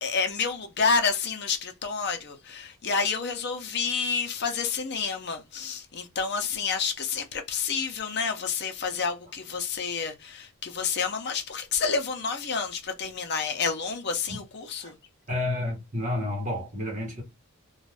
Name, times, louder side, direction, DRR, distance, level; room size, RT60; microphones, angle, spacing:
voice 1, 0.0-14.9, left 5 dB, 50° left, 0.6 m, -29 dB
voice 2, 15.3-17.2, left 1 dB, 35° right, 1.1 m, -30 dB
2.5 x 2.3 x 3.2 m
head